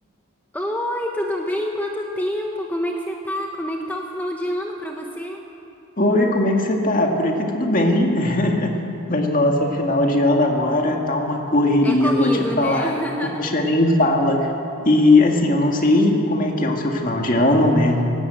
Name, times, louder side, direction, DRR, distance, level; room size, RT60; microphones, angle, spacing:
voice 1, 0.5-5.4 11.8-13.5, equal, 10° left, 1 dB, 1.0 m, -27 dB
voice 2, 6.0-8.7 9.1-12.3 12.6-12.9 13.4-14.5 14.9-18.0, left 1 dB, 40° left, 1 dB, 2.0 m, -19 dB
18.5 x 18.0 x 8.2 m, 2.8 s
head